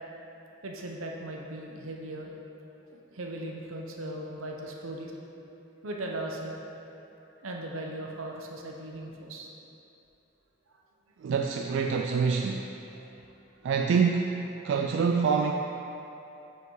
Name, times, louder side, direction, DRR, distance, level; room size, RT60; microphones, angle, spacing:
voice 1, 0.6-2.3 2.9-5.1 5.8-6.6 7.4-9.5, right 1 dB, 85° right, 0 dB, 0.8 m, -38 dB
voice 2, 11.2-12.7 13.6-15.5, right 5 dB, 60° right, 2 dB, 0.3 m, -26 dB
5.8 x 5.5 x 4.7 m, 2.9 s
head